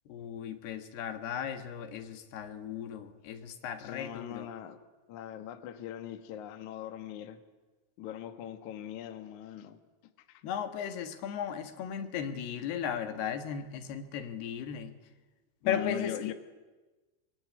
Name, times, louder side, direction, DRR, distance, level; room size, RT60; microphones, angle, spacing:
voice 1, 0.1-4.5 10.4-14.9 15.6-16.1, left 8 dB, 65° left, 7 dB, 3.1 m, -36 dB
voice 2, 3.8-4.8 5.1-7.4 8.0-10.4 15.6-16.3, left 11 dB, 80° left, 8 dB, 1.7 m, -41 dB
24.0 x 23.5 x 9.6 m, 1.2 s
omnidirectional pair, 5.9 m